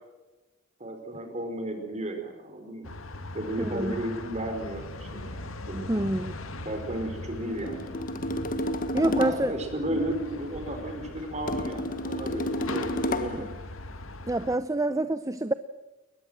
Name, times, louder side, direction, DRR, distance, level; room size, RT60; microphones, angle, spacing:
voice 1, 0.8-2.9 3.3-5.4 5.7-6.1 6.6-8.0 9.0-13.5, right 1 dB, 35° right, 5 dB, 4.7 m, -34 dB
sound 1, 2.8-14.6, left 2 dB, 75° left, 1.9 m, -40 dB
voice 2, 3.6-4.0 5.7-6.3 8.9-9.5 9.9-10.0 13.4-13.5 14.3-15.5, right 1 dB, 15° right, 12 dB, 0.6 m, -27 dB
sound 2, 7.5-9.6 11.5-13.5, left 1 dB, 45° left, 1.6 m, -31 dB
22.5 x 20.0 x 7.6 m, 1.2 s
head